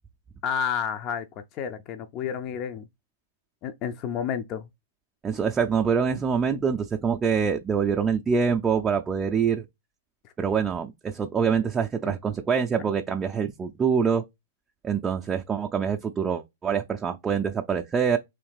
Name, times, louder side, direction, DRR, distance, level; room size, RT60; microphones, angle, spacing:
voice 1, 0.4-1.3 1.5-2.9 3.6-4.7 12.0-12.1 12.7-12.8, left 7 dB, 40° left, 0.4 m, -30 dB
voice 2, 5.2-9.6 10.4-14.2 14.8-18.2, right 6 dB, 20° right, 0.4 m, -25 dB
3.4 x 3.2 x 3.1 m
hypercardioid pair, 115°, 0 cm